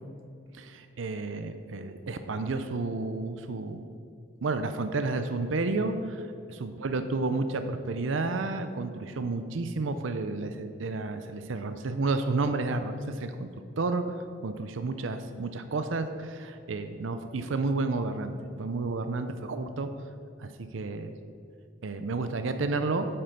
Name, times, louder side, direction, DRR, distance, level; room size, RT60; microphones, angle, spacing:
voice 1, 0.6-3.8 4.4-6.2 6.6-14.0 14.4-19.9 20.4-21.1 21.8-23.1, right 3 dB, 80° right, 9 dB, 0.6 m, -31 dB
8.8 x 7.7 x 5.2 m, 2.3 s
head